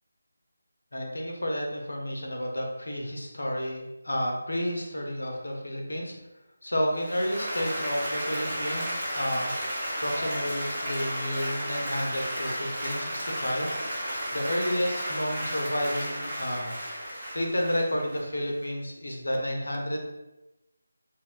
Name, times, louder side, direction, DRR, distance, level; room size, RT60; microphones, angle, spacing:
voice 1, 0.9-6.1 6.6-16.8 17.3-20.1, equal, 70° left, 1 dB, 0.5 m, -31 dB
Applause, 6.9-18.6, equal, 20° right, 0.8 m, -33 dB
2.8 x 2.1 x 2.3 m, 0.98 s
figure-of-eight pair, 160°, 0 cm